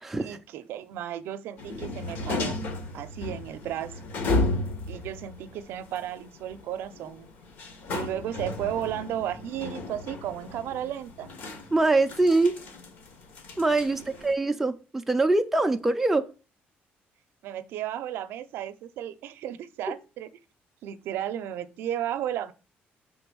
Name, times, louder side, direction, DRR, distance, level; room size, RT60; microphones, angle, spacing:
voice 1, 0.2-2.6 2.9-3.9 4.9-7.3 7.9-11.3 13.9-14.2 17.4-20.3 20.8-22.5, right 11 dB, 75° right, 0.5 m, -34 dB
sound 1, 1.6-14.3, left 2 dB, 55° left, 1.2 m, -34 dB
voice 2, 11.7-12.5 13.6-16.2, right 2 dB, 5° right, 0.4 m, -23 dB
6.0 x 3.8 x 6.1 m
cardioid pair, 180°, 4 cm